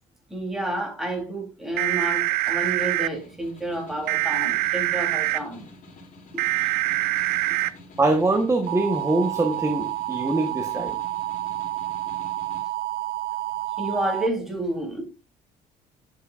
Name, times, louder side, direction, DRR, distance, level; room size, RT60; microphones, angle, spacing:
voice 1, 0.3-5.7 6.3-6.7 13.7-15.0, right 1 dB, ahead, 3.3 m, -30 dB
sound 1, 1.8-3.1 4.1-5.4 6.4-7.7 8.7-14.3, right 16 dB, 70° right, 0.5 m, -26 dB
Snare drum, 3.0-12.7, left 2 dB, 50° left, 4.6 m, -47 dB
voice 2, 8.0-11.0, right 2 dB, 15° right, 1.1 m, -23 dB
11.0 x 7.0 x 2.5 m
cardioid pair, 110°, 17 cm